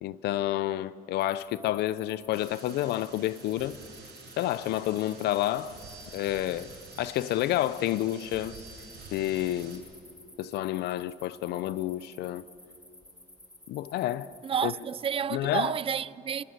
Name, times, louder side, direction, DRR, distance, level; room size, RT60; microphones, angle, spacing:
voice 1, 0.0-3.8 4.4-5.8 6.1-8.6 9.1-9.8 10.4-12.4 13.7-14.3 14.6-14.7 15.3-15.7, left 14 dB, 75° left, 0.6 m, -29 dB
sound 1, 1.2-15.2, left 1 dB, 10° left, 1.5 m, -54 dB
sound 2, 2.3-9.8, right 4 dB, 80° right, 5.7 m, -49 dB
voice 2, 14.4-16.4, right 8 dB, 35° right, 0.5 m, -30 dB
30.0 x 24.0 x 6.7 m
cardioid pair, 110°, 17 cm